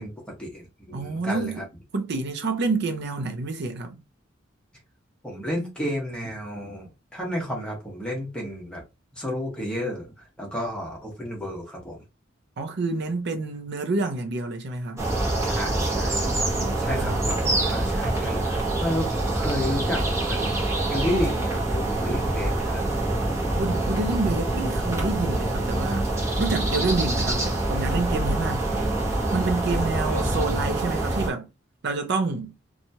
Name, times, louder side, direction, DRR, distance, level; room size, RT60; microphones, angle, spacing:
voice 1, 0.0-1.6 5.2-8.8 9.2-10.1 10.4-12.0 15.4-16.2 16.8-17.4 17.7-20.6 20.9-22.9 28.7-29.1 29.9-30.3, equal, 5° left, 1.1 m, -32 dB
voice 2, 0.9-1.6 1.9-4.0 12.6-15.0 16.5-17.2 23.6-26.1 26.4-28.7 29.3-31.5 31.8-32.5, right 3 dB, 60° right, 0.5 m, -28 dB
sound 1, 15.0-31.3, right 2 dB, 15° right, 0.8 m, -25 dB
2.8 x 2.3 x 2.7 m
head